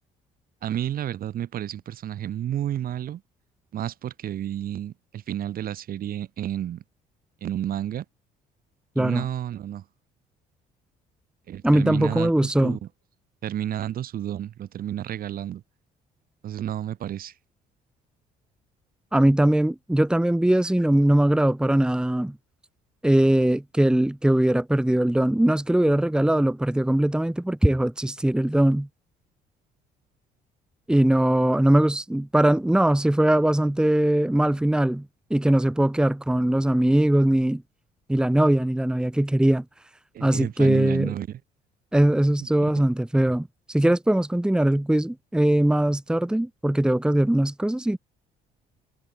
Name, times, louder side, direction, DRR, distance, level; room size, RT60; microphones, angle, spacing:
voice 1, 0.6-3.2 3.7-6.8 7.4-8.1 9.0-9.8 11.5-12.9 13.4-15.6 16.4-17.3 40.1-41.4 42.4-42.5, right 11 dB, 60° right, 5.4 m, -31 dB
voice 2, 11.6-12.8 19.1-22.4 23.0-28.9 30.9-35.0 35.3-37.6 38.1-39.6 40.2-41.1 41.9-48.0, right 1 dB, 5° right, 1.7 m, -21 dB
cardioid pair, 110°, 17 cm